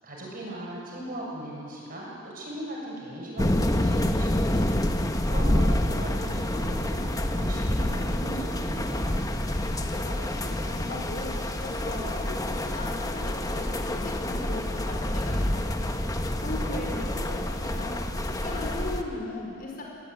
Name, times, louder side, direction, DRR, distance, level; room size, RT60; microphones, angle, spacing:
voice 1, 0.0-9.2 16.6-17.3, right 1 dB, 45° right, -3 dB, 7.3 m, -39 dB
sound 1, 3.4-19.0, left 1 dB, 20° left, 1.1 m, -27 dB
voice 2, 9.9-15.9 16.4-17.9 18.4-19.8, left 2 dB, 50° left, -1 dB, 4.7 m, -37 dB
22.0 x 17.0 x 9.7 m, 2.6 s
head